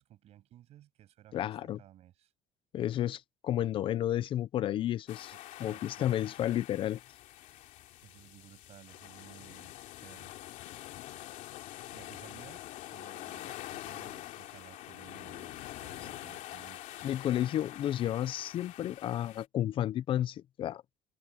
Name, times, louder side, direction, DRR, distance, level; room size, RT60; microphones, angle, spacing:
voice 1, 0.0-2.3 5.3-6.1 8.0-9.8 10.0-10.4 11.9-17.2, right 13 dB, 55° right, 7.2 m, -56 dB
voice 2, 1.3-1.8 2.7-5.3 5.6-7.0 17.0-20.8, left 12 dB, 40° left, 0.4 m, -32 dB
sound 1, 5.1-19.5, left 15 dB, 80° left, 2.6 m, -46 dB
cardioid pair, 175°, 13 cm